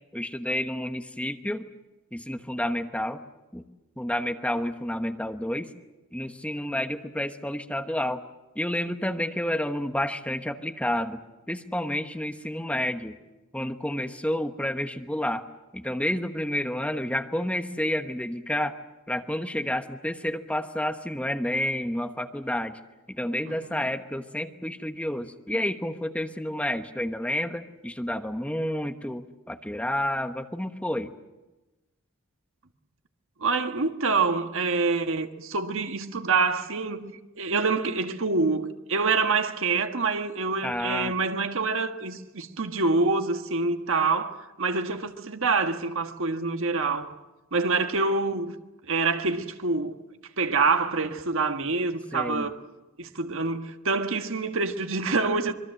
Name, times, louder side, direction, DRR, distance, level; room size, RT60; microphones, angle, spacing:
voice 1, 0.1-1.7 2.1-3.2 3.5-3.6 4.0-5.7 6.1-8.2 8.5-11.2 11.5-13.2 13.5-15.4 15.7-18.8 19.1-22.8 23.1-31.1 40.6-41.1 52.1-52.5, left 1 dB, 5° left, 1.1 m, -30 dB
voice 2, 23.4-23.8 33.4-47.1 47.5-48.5 48.8-50.0 50.4-52.6 53.0-55.5, right 4 dB, 60° right, 1.5 m, -26 dB
26.0 x 22.0 x 7.7 m
head